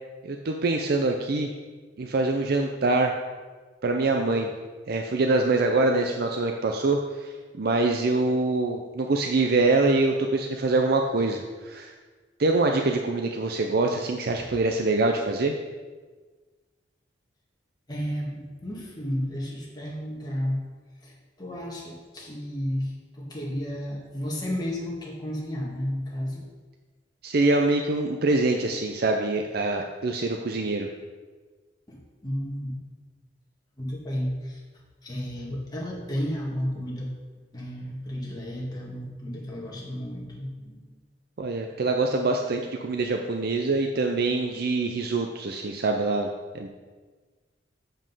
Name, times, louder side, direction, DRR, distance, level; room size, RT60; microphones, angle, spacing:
voice 1, 0.2-1.5 2.0-3.1 3.8-4.5 4.9-11.9 12.4-15.5 27.2-30.9 41.4-46.3 46.5-46.7, right 2 dB, 60° right, 3 dB, 0.5 m, -24 dB
voice 2, 17.9-20.6 21.0-26.4 31.9-32.8 33.8-34.6 35.0-37.1 37.5-40.9, equal, 25° left, -3 dB, 1.8 m, -32 dB
7.7 x 5.1 x 5.5 m, 1.4 s
head